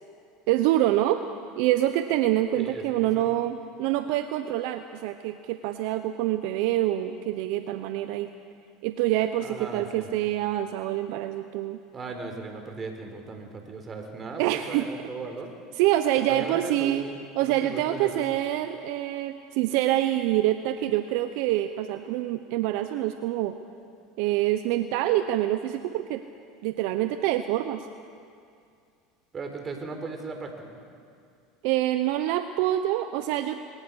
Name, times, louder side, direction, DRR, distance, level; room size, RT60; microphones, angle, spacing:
voice 1, 0.5-1.2 1.6-8.3 8.8-11.8 14.4-14.9 15.8-17.0 17.4-23.5 24.2-26.2 26.6-27.9 31.6-33.6, right 14 dB, 70° right, 9 dB, 0.8 m, -26 dB
voice 2, 2.6-3.4 9.4-10.1 11.9-15.5 16.2-18.2 29.3-30.8, right 4 dB, 30° right, 5 dB, 4.1 m, -37 dB
23.5 x 18.0 x 6.5 m, 2.4 s
hypercardioid pair, 95°, 0 cm